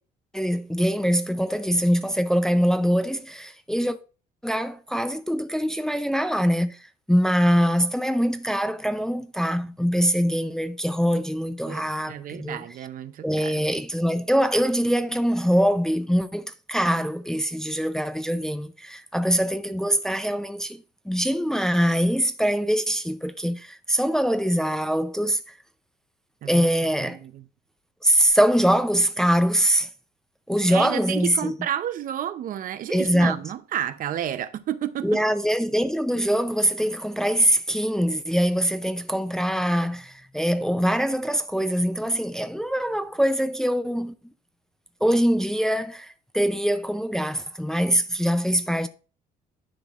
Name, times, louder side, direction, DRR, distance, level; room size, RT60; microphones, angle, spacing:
voice 1, 0.3-4.0 4.4-12.6 13.2-25.5 26.4-27.2 28.0-29.9 30.5-31.5 32.9-33.4 35.0-44.1 45.0-48.9, equal, 5° left, 0.5 m, -23 dB
voice 2, 11.6-13.7 26.4-26.7 27.0-27.4 30.7-35.1, right 10 dB, 55° right, 0.6 m, -31 dB
10.5 x 5.9 x 2.4 m
cardioid pair, 110°, 17 cm